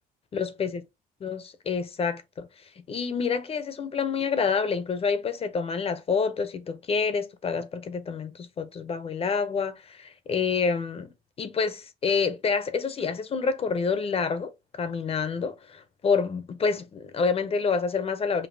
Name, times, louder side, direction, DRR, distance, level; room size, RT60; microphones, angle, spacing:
voice 1, 0.3-0.8 1.2-2.5 2.9-11.1 11.4-18.5, left 5 dB, 35° left, 0.6 m, -28 dB
5.3 x 2.5 x 2.6 m
cardioid pair, 110°, 17 cm